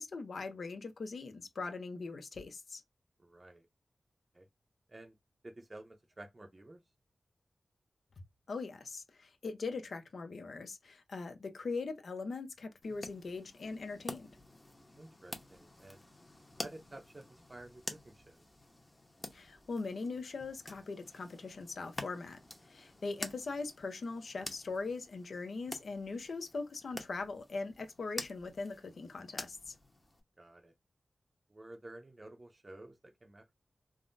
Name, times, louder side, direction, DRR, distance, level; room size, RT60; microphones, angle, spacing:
voice 1, 0.0-2.8 8.5-14.3 19.3-22.4 22.7-29.8, left 3 dB, 80° left, 0.6 m, -41 dB
voice 2, 3.2-3.7 4.3-4.5 4.9-5.2 5.4-6.8 15.0-16.0 16.6-18.4 30.4-30.7 31.5-33.6, right 1 dB, 35° right, 0.6 m, -52 dB
sound 1, 12.8-30.2, left 1 dB, 25° left, 0.8 m, -49 dB
3.5 x 2.1 x 2.5 m
wide cardioid pair, 65°, 0 cm